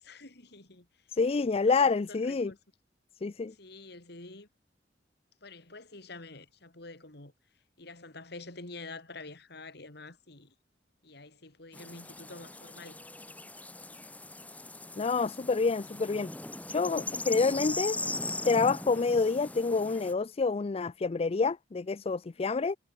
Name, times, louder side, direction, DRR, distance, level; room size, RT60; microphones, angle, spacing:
voice 1, 0.0-1.1 1.6-2.6 3.4-4.5 5.4-7.3 7.8-10.5 11.0-13.0, left 3 dB, 65° left, 3.6 m, -47 dB
voice 2, 1.1-2.5 3.2-3.5 15.0-16.3 16.7-18.0 18.4-22.8, left 4 dB, 35° left, 0.4 m, -28 dB
sound 1, 11.7-20.1, left 2 dB, 10° left, 0.8 m, -39 dB
head